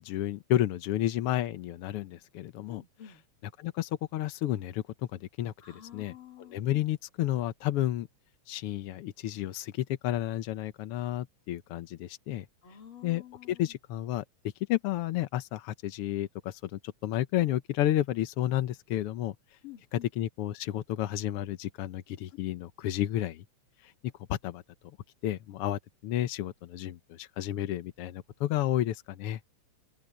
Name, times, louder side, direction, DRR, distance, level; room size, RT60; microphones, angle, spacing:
voice 1, 0.0-2.8 3.6-5.5 5.9-6.1 6.4-8.1 8.5-12.4 13.0-13.2 13.5-14.2 14.7-19.3 19.9-23.4 23.8-23.9 24.3-24.6 25.2-29.4, left 13 dB, 75° left, 1.4 m, -31 dB
voice 2, 2.7-3.2 5.6-6.8 12.6-13.7 19.6-20.1, left 11 dB, 45° left, 3.0 m, -49 dB
omnidirectional pair, 3.5 m